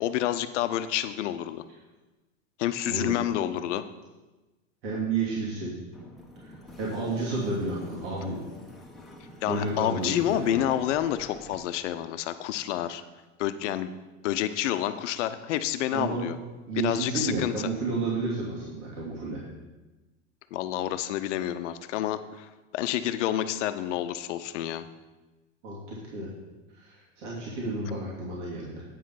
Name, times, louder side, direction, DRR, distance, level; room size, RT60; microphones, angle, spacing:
voice 1, 0.0-1.6 2.6-3.8 9.4-13.0 13.4-13.9 14.2-16.4 16.8-17.7 20.5-24.9, left 12 dB, 70° left, 11 dB, 0.7 m, -29 dB
voice 2, 4.8-5.8 6.4-8.4 9.5-10.6 15.9-16.3 16.7-19.4 25.6-26.3 26.8-28.8, right 3 dB, 70° right, -6 dB, 2.7 m, -31 dB
sound 1, 5.9-11.5, left 1 dB, ahead, 1.2 m, -47 dB
9.1 x 5.1 x 5.8 m, 1.1 s
hypercardioid pair, 120°, 37 cm